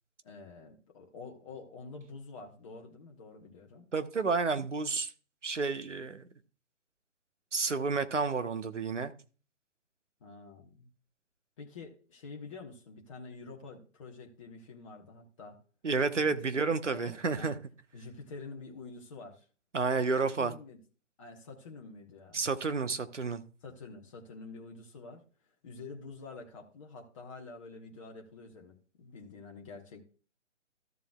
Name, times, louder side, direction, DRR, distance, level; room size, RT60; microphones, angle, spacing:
voice 1, 0.2-3.9 10.2-10.9 11.6-15.6 16.1-17.5 17.9-19.5 20.2-20.8 21.2-22.4 23.6-25.2 25.6-30.0, left 3 dB, 25° left, 1.2 m, -48 dB
voice 2, 3.9-5.1 5.4-6.2 7.5-9.1 15.8-17.5 19.7-20.5 22.3-23.4, right 4 dB, 70° right, 1.2 m, -30 dB
13.5 x 7.4 x 2.3 m
figure-of-eight pair, 140°, 37 cm